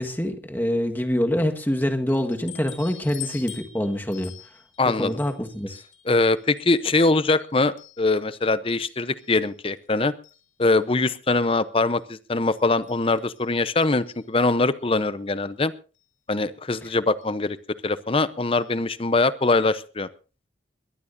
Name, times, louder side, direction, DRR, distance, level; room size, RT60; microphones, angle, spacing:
voice 1, 0.0-4.3 4.8-5.8, left 1 dB, 10° left, 5 dB, 1.4 m, -25 dB
sound 1, 2.1-8.4 8.8-9.9 10.2-10.8 11.5-11.6 11.9-12.0 12.5-14.4 15.5-15.6 15.9-16.1 17.2-17.4 18.5-18.7 19.0-19.1 19.4-19.5, left 11 dB, 85° left, 3.3 m, -46 dB
voice 2, 4.8-5.2 6.1-10.1 10.6-15.7 16.3-17.6 17.8-20.1, left 3 dB, 30° left, 15 dB, 0.7 m, -22 dB
22.5 x 17.0 x 2.6 m, 0.36 s
head